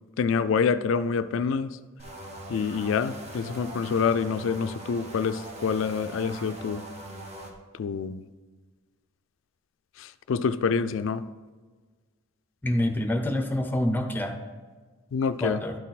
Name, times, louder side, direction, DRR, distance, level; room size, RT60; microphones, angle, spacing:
voice 1, 0.2-1.8 2.5-6.8 7.8-8.2 10.0-11.2 15.1-15.6, left 5 dB, 70° left, 13 dB, 0.4 m, -26 dB
sound 1, 2.0-7.5, right 1 dB, 35° right, 0.9 m, -41 dB
voice 2, 12.6-14.4 15.4-15.8, left 1 dB, 10° left, 5 dB, 0.7 m, -26 dB
12.0 x 4.3 x 4.1 m, 1.4 s
head